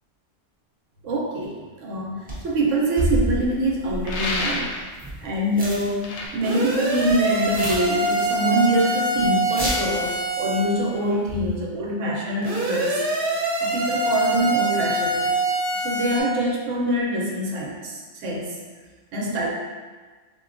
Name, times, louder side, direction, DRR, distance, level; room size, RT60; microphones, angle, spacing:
voice 1, 1.0-4.7 5.2-15.3 15.7-18.6 19.1-19.5, right 1 dB, 85° right, -2 dB, 1.0 m, -25 dB
sound 1, 2.3-2.5 3.0-5.3 5.5-5.9 6.2-6.6 7.1-8.5 8.7-8.8 9.2-9.3 9.5-10.0 11.1-11.6, right 1 dB, 10° right, 0.4 m, -29 dB
sound 2, 4.0-4.9 6.0-6.3, left 2 dB, 70° left, 0.8 m, -28 dB
sound 3, 6.4-10.7 12.4-16.2, right 2 dB, 55° right, 0.8 m, -24 dB
4.1 x 2.2 x 2.5 m, 1.4 s
omnidirectional pair, 1.3 m